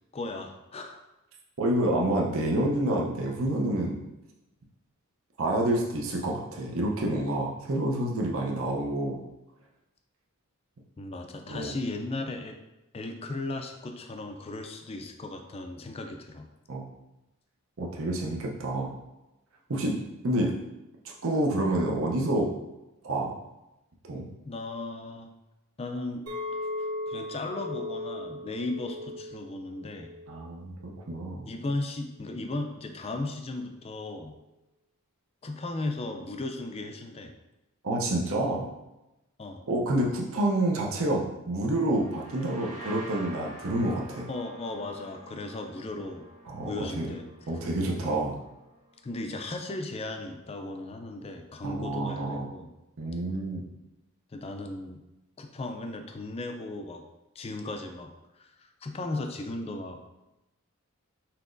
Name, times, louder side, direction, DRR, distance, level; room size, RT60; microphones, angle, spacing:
voice 1, 0.1-1.0 11.0-12.6 12.9-16.5 19.7-19.9 24.5-25.3 25.8-26.2 26.5-30.1 31.5-34.3 35.4-37.3 39.4-39.6 44.3-46.2 46.7-47.2 49.0-52.7 54.3-55.0 55.4-57.0 57.4-58.1 58.4-60.0, left 2 dB, 25° left, 5 dB, 0.4 m, -36 dB
voice 2, 1.6-4.0 5.4-9.2 11.5-11.7 16.7-16.8 17.8-18.9 19.7-19.9 20.2-20.5 21.0-22.5 23.0-23.3 24.1-24.3 30.3-31.4 37.8-38.7 39.7-44.3 46.5-47.1 47.5-48.4 51.6-52.5 53.0-53.6, right 1 dB, 65° right, -1 dB, 0.7 m, -28 dB
Chink clink, 26.3-30.6 30.9-31.4, left 2 dB, 80° right, 1.1 m, -38 dB
sound 1, 41.9-49.4, right 1 dB, 35° right, 1.2 m, -47 dB
5.8 x 2.9 x 2.5 m, 0.96 s
head